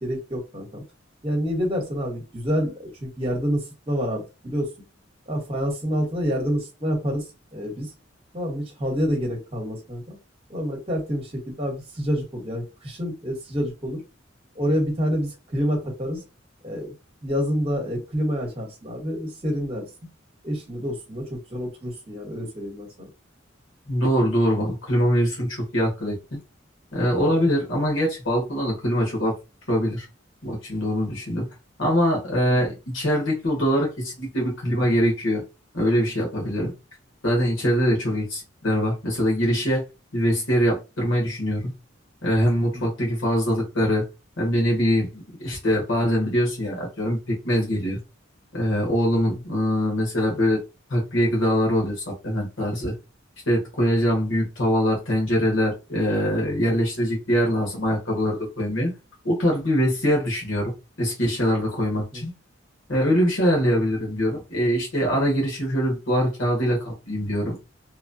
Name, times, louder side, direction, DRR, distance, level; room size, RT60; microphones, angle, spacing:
voice 1, 0.0-0.8 1.2-4.7 5.3-7.9 8.3-10.2 10.5-14.0 14.5-16.2 16.6-16.9 17.2-19.9 20.4-23.1 32.4-32.7 42.7-42.9 49.1-49.4 61.9-62.2, equal, 30° right, 1.1 m, -28 dB
voice 2, 23.9-26.4 26.9-29.3 29.7-30.1 30.4-31.5 31.8-35.4 35.7-36.7 37.2-39.8 40.1-41.7 42.2-44.0 44.4-48.0 48.5-50.6 50.9-52.9 53.5-58.9 59.2-60.7 61.0-62.3 62.9-67.6, equal, 90° left, 1.3 m, -23 dB
3.1 x 2.2 x 2.6 m
head